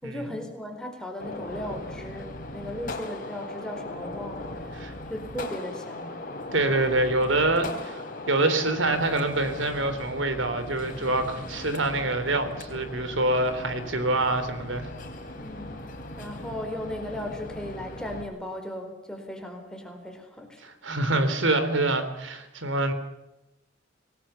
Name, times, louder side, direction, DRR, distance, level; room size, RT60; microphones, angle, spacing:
voice 1, 0.0-6.1 15.4-15.9 16.2-20.6, left 1 dB, 5° left, 3 dB, 4.5 m, -37 dB
Gunshot gunfire, 1.2-18.2, left 2 dB, 45° left, 3.8 m, -38 dB
voice 2, 6.5-14.9 20.6-22.9, right 2 dB, 85° right, 9 dB, 3.6 m, -26 dB
26.5 x 19.0 x 7.1 m, 0.95 s
head